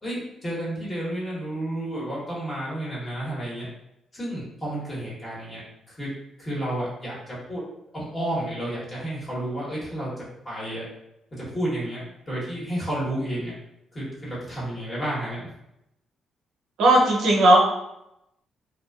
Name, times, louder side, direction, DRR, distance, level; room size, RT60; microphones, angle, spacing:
voice 1, 0.0-3.7 4.1-5.6 5.9-6.1 6.4-7.6 7.9-10.1 10.4-10.8 11.3-13.5 13.9-15.5, right 1 dB, 30° left, -6 dB, 1.2 m, -31 dB
voice 2, 16.8-17.6, right 1 dB, 80° right, -2 dB, 0.7 m, -16 dB
2.4 x 2.3 x 2.3 m, 0.85 s
cardioid pair, 90°, 0 cm